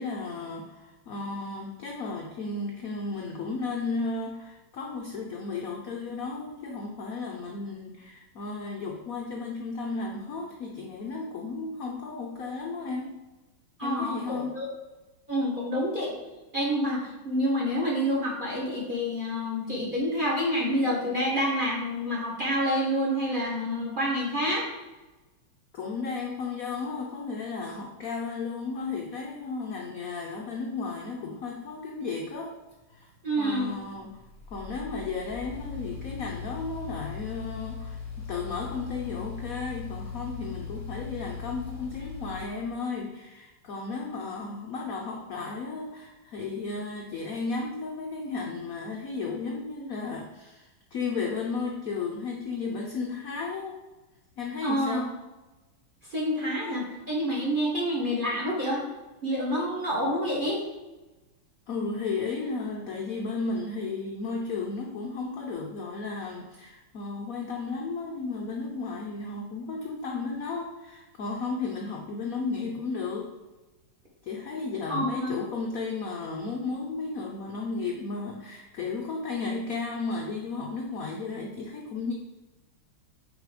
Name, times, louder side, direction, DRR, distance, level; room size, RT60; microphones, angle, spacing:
voice 1, 0.0-13.2 13.8-14.6 25.7-32.6 32.9-33.1 33.4-34.2 34.5-53.8 54.4-55.1 61.7-73.3 74.2-82.1, left 4 dB, 80° left, 0 dB, 0.8 m, -34 dB
voice 2, 13.8-14.7 15.3-16.1 16.5-24.6 33.2-33.7 54.6-55.0 56.1-58.8 59.2-60.6 74.9-75.4, equal, 30° right, -3 dB, 1.1 m, -28 dB
sound 1, 32.7-42.5, left 6 dB, 25° left, 0.3 m, -39 dB
5.4 x 4.3 x 4.8 m, 1.1 s
omnidirectional pair, 2.4 m